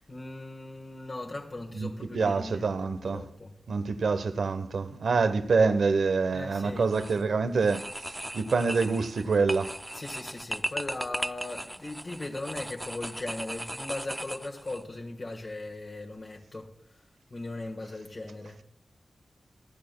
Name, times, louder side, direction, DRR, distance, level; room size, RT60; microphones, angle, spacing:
voice 1, 0.1-3.5 6.3-6.9 9.9-16.7 17.3-18.6, left 2 dB, 35° left, 1.3 m, -38 dB
voice 2, 1.7-3.2 3.7-9.7, right 4 dB, 75° right, 0.9 m, -26 dB
sound 1, 6.8-7.2 7.6-14.8, right 1 dB, 5° right, 0.4 m, -37 dB
24.5 x 8.7 x 2.2 m
wide cardioid pair, 140°, 0 cm